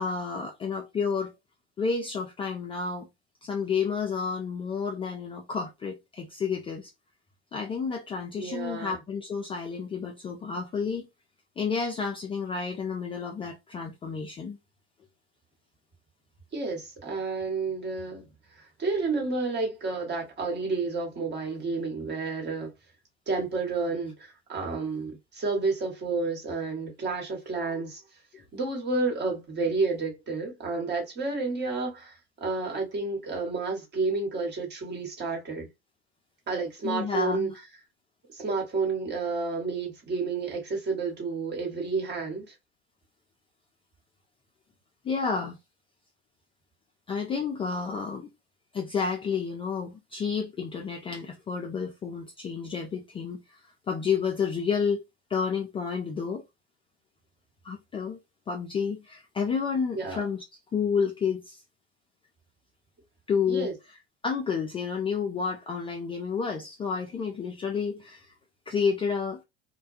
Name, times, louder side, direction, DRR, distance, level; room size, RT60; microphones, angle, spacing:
voice 1, 0.0-1.3 1.8-3.1 3.4-6.9 7.5-11.1 11.6-14.6 36.8-37.5 45.0-45.6 47.1-48.3 48.7-53.6 53.9-55.0 55.3-56.4 57.6-58.2 58.5-60.4 60.7-61.6 63.3-63.7 64.2-68.3 68.7-69.4, left 5 dB, 15° left, 0.4 m, -30 dB
voice 2, 8.4-9.0 16.5-18.2 18.8-22.7 23.3-28.0 28.5-32.1 32.4-35.7 36.5-37.5 38.3-42.5 59.9-60.2 63.5-63.7, right 3 dB, 35° right, 1.2 m, -30 dB
2.2 x 2.2 x 2.5 m
hypercardioid pair, 85°, 32 cm